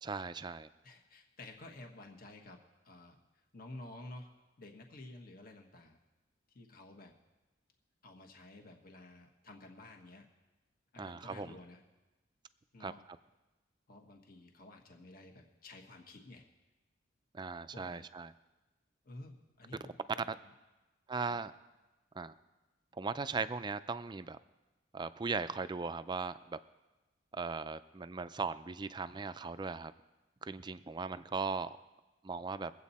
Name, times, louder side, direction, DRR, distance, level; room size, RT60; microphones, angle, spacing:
voice 1, 0.0-0.7 11.0-11.6 12.8-12.9 17.3-18.3 20.3-20.4 21.1-21.5 22.2-22.3 22.9-24.4 24.9-26.6 27.3-29.9 30.4-31.8 32.2-32.7, right 4 dB, 25° right, 12 dB, 0.4 m, -38 dB
voice 2, 0.8-3.2 3.5-4.3 4.6-6.0 6.5-7.1 8.0-10.3 10.9-11.8 12.7-13.0 13.9-16.4 17.7-18.0 19.0-20.4, left 2 dB, 50° left, 2 dB, 1.3 m, -52 dB
22.5 x 8.1 x 4.2 m, 1.1 s
head